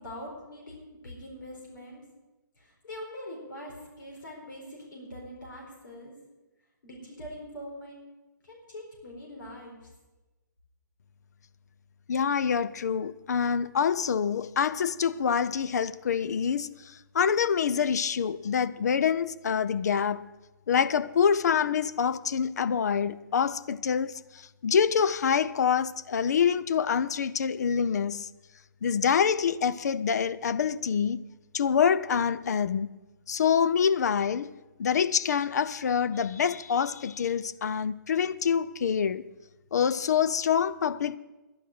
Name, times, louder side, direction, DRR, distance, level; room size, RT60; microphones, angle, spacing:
voice 1, 0.0-2.0 2.6-6.1 6.8-8.0 8.4-9.9, left 1 dB, 75° left, 4.4 m, -43 dB
voice 2, 12.1-20.3 20.7-28.3 28.8-31.2 31.5-32.9 33.3-34.5 34.8-39.2 39.7-41.2, left 7 dB, 55° left, 0.5 m, -26 dB
11.5 x 10.0 x 6.6 m
hypercardioid pair, 175°, 11 cm